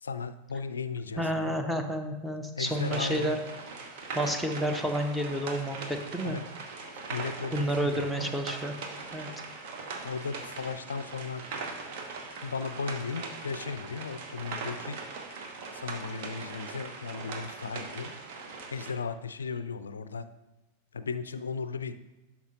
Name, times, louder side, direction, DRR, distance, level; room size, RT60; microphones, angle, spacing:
voice 1, 0.0-1.6 2.6-3.4 6.2-6.4 7.1-8.3 10.0-11.5 12.4-15.0 15.7-18.1 18.7-20.3 20.9-22.0, left 5 dB, 70° left, 12 dB, 0.4 m, -36 dB
voice 2, 1.2-3.4 4.1-6.4 7.5-8.7 9.1-9.3, equal, 5° right, 6 dB, 0.8 m, -30 dB
sound 1, 2.7-18.9, right 4 dB, 50° right, 1.0 m, -40 dB
12.0 x 5.7 x 2.6 m, 1.0 s
figure-of-eight pair, 90°, 0 cm